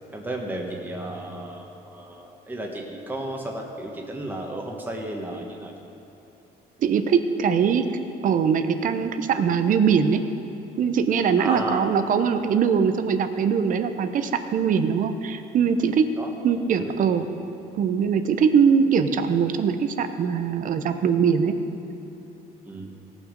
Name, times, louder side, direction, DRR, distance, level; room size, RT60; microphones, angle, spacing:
voice 1, 0.1-5.7 11.4-11.9 16.2-17.1 22.6-22.9, right 1 dB, 10° right, -1 dB, 1.3 m, -33 dB
voice 2, 6.8-7.8 8.2-10.2 10.8-16.1 16.4-17.3 17.7-21.5, right 6 dB, 50° right, 9 dB, 0.8 m, -22 dB
17.5 x 6.1 x 5.2 m, 3.0 s
cardioid pair, 110°, 17 cm